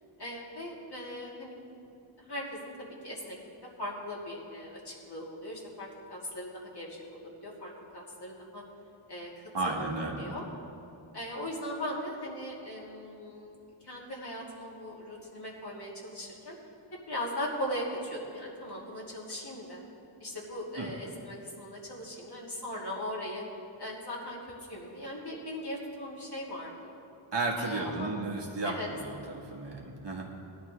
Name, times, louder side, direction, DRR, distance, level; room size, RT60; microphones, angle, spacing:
voice 1, 0.2-1.8 2.2-3.4 3.8-8.6 9.1-9.3 9.8-10.4 11.1-13.6 13.8-16.6 17.1-19.8 20.2-23.4 23.8-24.4 24.7-26.9 27.6-28.1 28.6-28.9, left 1 dB, 55° left, -5 dB, 2.8 m, -39 dB
voice 2, 9.5-10.3 20.8-20.9 27.3-30.3, right 2 dB, 60° right, -2 dB, 1.9 m, -33 dB
18.5 x 11.0 x 3.3 m, 2.7 s
wide cardioid pair, 90°, 48 cm